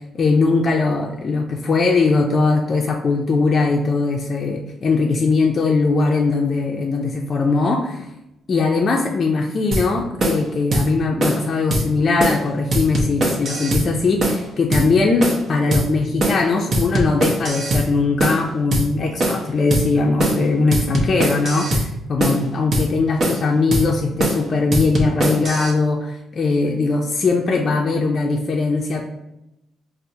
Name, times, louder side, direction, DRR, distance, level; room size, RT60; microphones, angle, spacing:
voice 1, 0.1-8.1 8.5-29.0, left 3 dB, 45° left, 0 dB, 0.4 m, -20 dB
sound 1, 9.7-9.9 10.2-10.4 10.7-10.9 11.2-11.4 11.7-11.9 12.2-12.4 12.7-13.9 14.2-14.4 14.7-14.9 15.2-15.4 15.7-15.9 16.2-16.4 16.7-17.9 18.2-18.4 18.7-18.9 19.2-19.4 19.7-19.9 20.2-20.4 20.7-21.9 22.2-22.4 22.7-22.9 23.2-23.5 23.7-23.9 24.2-24.4 24.7-25.7, right 1 dB, 55° right, 0.7 m, -21 dB
4.4 x 2.0 x 2.6 m, 0.88 s
cardioid pair, 90°, 0 cm